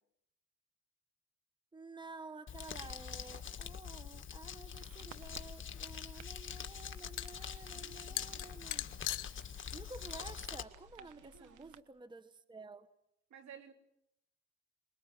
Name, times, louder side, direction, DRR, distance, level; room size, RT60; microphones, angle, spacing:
voice 1, 1.7-9.2 9.7-12.9, right 3 dB, 15° right, 1.0 m, -52 dB
Crumpling crinkling, 2.5-10.6, left 7 dB, 40° left, 1.9 m, -45 dB
sound 1, 4.7-11.8, right 11 dB, 85° right, 1.3 m, -60 dB
sound 2, 5.2-11.4, left 15 dB, 85° left, 0.9 m, -45 dB
voice 2, 7.7-9.0 11.0-11.8 13.3-13.7, right 7 dB, 65° right, 3.5 m, -57 dB
24.0 x 21.5 x 7.5 m
cardioid pair, 90°, 30 cm